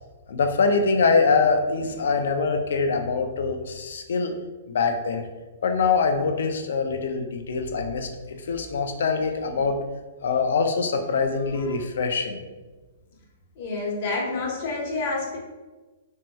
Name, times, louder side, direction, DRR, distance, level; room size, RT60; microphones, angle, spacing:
voice 1, 0.3-4.3 4.7-5.2 5.6-9.8 10.2-12.4, left 4 dB, 75° left, 5 dB, 0.4 m, -24 dB
voice 2, 13.6-15.4, left 3 dB, 50° left, -3 dB, 0.9 m, -28 dB
3.0 x 2.7 x 2.2 m, 1.2 s
hypercardioid pair, 140°, 0 cm